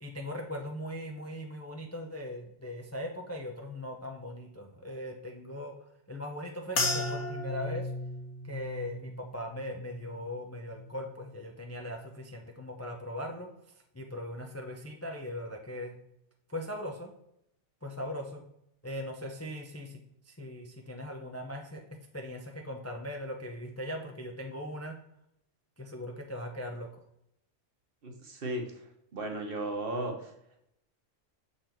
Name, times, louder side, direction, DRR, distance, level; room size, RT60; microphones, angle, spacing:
voice 1, 0.0-5.8 6.1-7.9 8.5-13.5 13.9-15.9 16.5-17.1 17.8-18.4 18.8-20.0 20.3-21.8 22.1-24.9 25.8-26.9, left 1 dB, 20° left, 2 dB, 0.5 m, -39 dB
sound 1, 6.8-11.3 11.6-12.3 12.9-13.1, left 2 dB, 70° left, 1.5 m, -36 dB
voice 2, 28.0-28.6 29.1-30.3, right 1 dB, 50° right, 2 dB, 1.2 m, -35 dB
6.7 x 4.1 x 4.4 m, 0.78 s
omnidirectional pair, 1.3 m